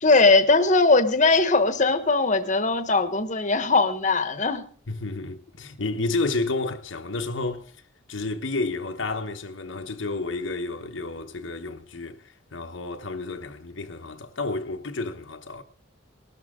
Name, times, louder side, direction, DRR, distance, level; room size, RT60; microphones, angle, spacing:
voice 1, 0.0-4.6, left 3 dB, 40° left, 1.2 m, -20 dB
voice 2, 4.9-7.7 8.1-15.6, left 3 dB, 75° left, 1.2 m, -31 dB
19.0 x 12.5 x 3.7 m
head